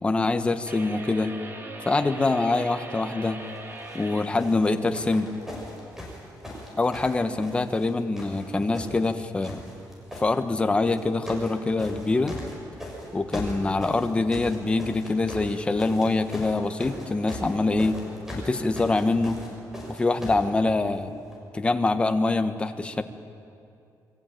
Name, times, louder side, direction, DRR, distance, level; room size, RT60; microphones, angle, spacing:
voice 1, 0.0-1.3 1.8-3.4 3.9-5.3 6.8-9.6 10.2-12.3 13.1-18.0 18.4-19.4 19.9-21.1 21.5-23.0, left 3 dB, 15° left, 8 dB, 1.3 m, -24 dB
sound 1, 0.7-4.3, right 2 dB, 30° right, 2.8 m, -40 dB
sound 2, 3.8-4.0 4.4-7.9 8.1-9.1 9.4-10.3 10.9-11.5 11.8-20.5 21.3-21.4, equal, 5° right, 6.3 m, -39 dB
28.0 x 23.0 x 9.2 m, 2.5 s
cardioid pair, 170°, 7 cm